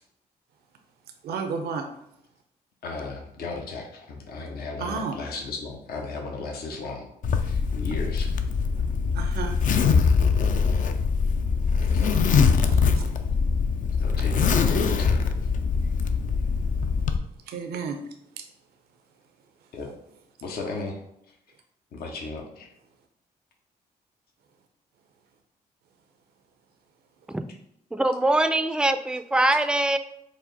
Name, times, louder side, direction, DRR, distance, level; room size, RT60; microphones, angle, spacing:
voice 1, 1.2-1.9 4.8-5.2 9.1-9.6 12.7-13.0 17.5-18.0 18.4-18.5, right 5 dB, 75° right, 6 dB, 0.5 m, -32 dB
voice 2, 2.8-7.1 7.4-8.3 10.7-10.8 12.0-12.2 14.0-15.3 19.7-19.9 20.4-21.0 21.9-22.7, left 3 dB, 70° left, 1 dB, 0.8 m, -35 dB
Zipper (clothing), 7.2-17.2, left 5 dB, 55° left, 0.4 m, -23 dB
voice 3, 27.9-30.0, right 1 dB, 5° right, 10 dB, 0.3 m, -23 dB
4.8 x 2.1 x 4.0 m, 0.77 s
supercardioid pair, 60°, 16 cm